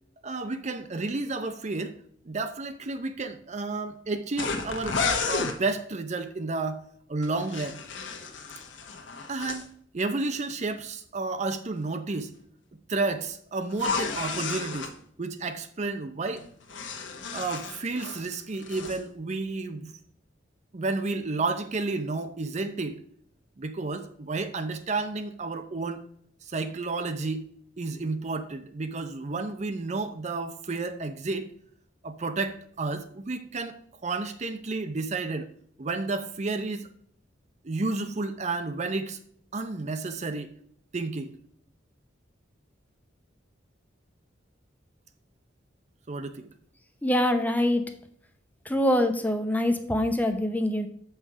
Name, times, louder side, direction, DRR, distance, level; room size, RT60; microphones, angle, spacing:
voice 1, 0.2-2.0 2.2-5.0 5.3-6.8 7.1-7.8 9.3-12.3 12.9-14.9 15.2-16.5 17.3-20.0 20.7-23.0 23.6-26.0 26.4-27.5 27.8-31.5 32.0-35.5 35.8-36.9 37.6-39.2 39.5-40.5 40.9-41.4 46.1-46.5, right 3 dB, 35° right, 9 dB, 0.6 m, -31 dB
sound 1, 4.4-5.6 7.2-9.6 13.7-14.9 16.4-18.2 18.5-19.0, left 4 dB, 75° left, 1.2 m, -32 dB
voice 2, 47.0-47.8 48.7-50.9, left 1 dB, 10° left, 7 dB, 0.7 m, -24 dB
7.7 x 5.6 x 4.8 m, 0.64 s
head